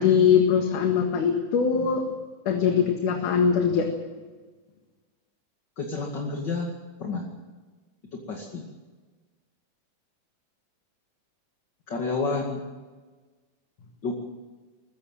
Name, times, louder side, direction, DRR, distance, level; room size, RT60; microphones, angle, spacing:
voice 1, 0.0-2.0 2.5-3.9, left 7 dB, 70° left, 3 dB, 3.2 m, -21 dB
voice 2, 5.8-6.7 7.0-7.3 8.1-8.6 11.9-12.6 14.0-14.2, left 3 dB, 35° left, 1 dB, 2.6 m, -30 dB
22.5 x 15.5 x 7.6 m, 1.3 s
omnidirectional pair, 3.8 m